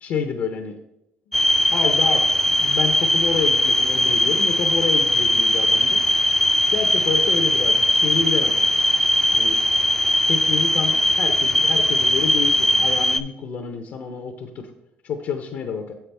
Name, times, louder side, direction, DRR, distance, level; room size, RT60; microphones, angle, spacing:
voice 1, 0.0-0.8 1.7-6.0 6.7-8.5 9.3-9.6 10.3-14.7 15.0-15.9, left 5 dB, 70° left, 4 dB, 0.7 m, -28 dB
sound 1, 1.3-13.2, left 1 dB, 5° left, 0.4 m, -19 dB
7.1 x 5.7 x 3.4 m, 0.86 s
cardioid pair, 90°, 4 cm